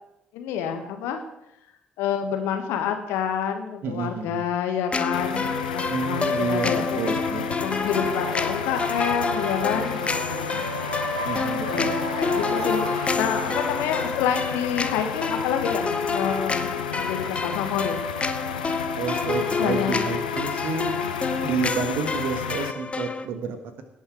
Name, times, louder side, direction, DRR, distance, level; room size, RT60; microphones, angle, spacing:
voice 1, 0.3-1.2 2.0-7.0 7.6-10.6 11.7-18.0 19.6-20.0 21.1-21.5, left 8 dB, 65° left, 6 dB, 1.5 m, -28 dB
voice 2, 3.8-4.4 5.9-7.6 11.2-12.0 19.0-20.9 21.4-23.6, right 5 dB, 55° right, 8 dB, 1.5 m, -30 dB
sound 1, 4.9-23.3, left 4 dB, 25° left, 0.9 m, -28 dB
sound 2, 5.1-22.7, left 9 dB, 80° left, 0.3 m, -33 dB
sound 3, 8.0-13.7, right 2 dB, 85° right, 1.2 m, -35 dB
17.5 x 6.4 x 4.9 m, 0.86 s
figure-of-eight pair, 45°, 4 cm